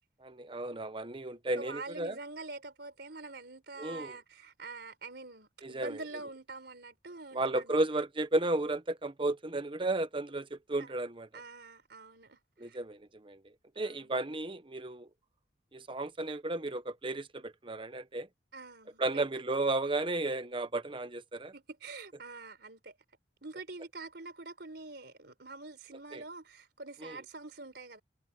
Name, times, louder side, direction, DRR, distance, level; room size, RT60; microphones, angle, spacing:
voice 1, 0.2-2.2 3.8-4.2 5.6-6.0 7.3-11.3 12.6-13.4 13.8-15.1 15.7-18.3 19.0-21.5 26.1-26.2 27.0-27.2, right 2 dB, 30° right, 1.0 m, -33 dB
voice 2, 1.6-7.8 10.8-10.9 11.3-12.8 13.7-14.1 18.5-19.3 21.5-23.0 23.4-28.0, right 3 dB, 65° right, 4.8 m, -46 dB
head